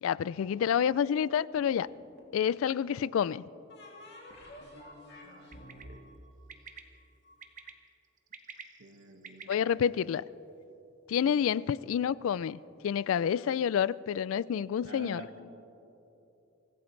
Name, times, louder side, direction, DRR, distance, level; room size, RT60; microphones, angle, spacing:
voice 1, 0.0-1.9 2.3-3.4 9.5-10.2 11.1-15.2, left 8 dB, 75° left, 0.3 m, -28 dB
sound 1, 1.6-2.4 3.7-7.3, left 1 dB, 55° left, 2.6 m, -50 dB
voice 2, 5.2-6.0 8.8-9.6 11.2-11.4 14.8-15.4, right 1 dB, 75° right, 1.8 m, -48 dB
Bird, 5.5-5.8 6.5-6.8 7.4-7.7 8.2-9.5, right 6 dB, 40° right, 0.9 m, -46 dB
25.0 x 15.5 x 3.2 m
head